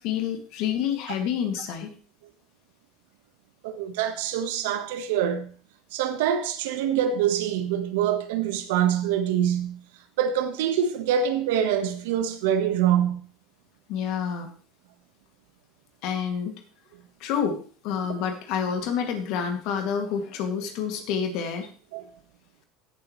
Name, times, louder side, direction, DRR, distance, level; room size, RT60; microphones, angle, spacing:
voice 1, 0.0-1.9 13.9-14.5 16.0-16.6 17.2-17.6 17.8-21.7, left 7 dB, 65° left, 2.4 m, -28 dB
voice 2, 3.6-5.5 5.9-9.8 10.2-13.2 18.0-18.1 21.9-22.0, right 9 dB, 75° right, 1.3 m, -25 dB
17.0 x 7.4 x 3.2 m
hypercardioid pair, 80°, 0 cm